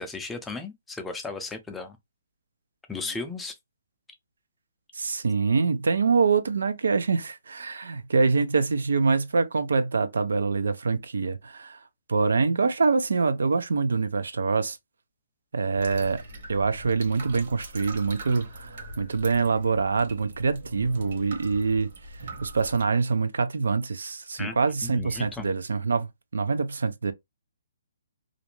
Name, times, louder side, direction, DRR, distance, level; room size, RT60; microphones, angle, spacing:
voice 1, 0.0-2.0 2.9-3.6 24.4-24.6 24.8-25.5, left 3 dB, 5° left, 0.4 m, -35 dB
voice 2, 4.9-11.8 12.1-14.8 15.5-16.2 16.5-21.9 22.4-27.1, right 4 dB, 80° right, 0.4 m, -25 dB
sound 1, 15.7-22.8, right 1 dB, 60° right, 1.1 m, -42 dB
2.5 x 2.1 x 2.9 m
hypercardioid pair, 150°, 0 cm